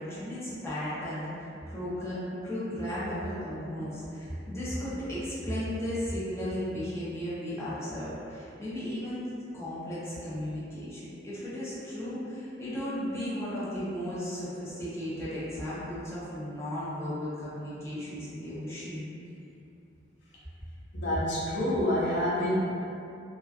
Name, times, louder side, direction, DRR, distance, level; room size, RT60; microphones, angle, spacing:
voice 1, 0.0-9.3 9.5-19.0, equal, 15° left, -11 dB, 0.6 m, -35 dB
voice 2, 20.9-22.5, left 1 dB, 70° left, -7 dB, 0.6 m, -28 dB
2.4 x 2.3 x 2.4 m, 2.7 s
head